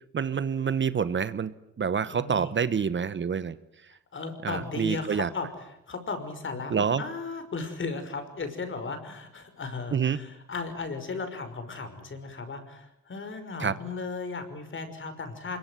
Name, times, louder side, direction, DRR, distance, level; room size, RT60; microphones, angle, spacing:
voice 1, 0.1-3.6 4.4-5.3 6.7-7.0 9.9-10.2 13.6-13.8, right 7 dB, 40° right, 15 dB, 1.1 m, -27 dB
voice 2, 2.1-2.5 4.1-15.6, left 4 dB, 40° left, 9 dB, 5.9 m, -36 dB
25.5 x 22.5 x 9.6 m, 0.82 s
cardioid pair, 90°, 30 cm